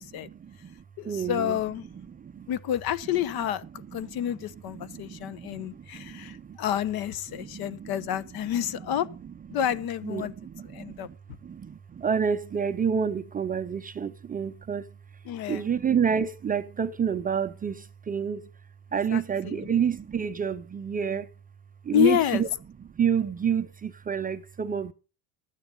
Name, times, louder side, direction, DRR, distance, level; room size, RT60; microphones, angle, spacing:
voice 1, 0.0-1.6 2.2-2.5 4.0-4.2 4.7-6.6 7.3-8.1 8.5-8.8 9.1-9.2 10.0-11.1 11.4-14.9 15.5-18.5 18.9-21.3 21.8-22.5 22.8-24.9, right 7 dB, 20° right, 0.5 m, -29 dB
voice 2, 1.0-1.8 2.5-3.6 3.9-9.1 9.5-10.3 10.7-11.1 15.3-15.6 19.1-19.6 21.9-22.4, left 11 dB, 55° left, 0.9 m, -29 dB
12.5 x 9.5 x 5.2 m
supercardioid pair, 115°, 44 cm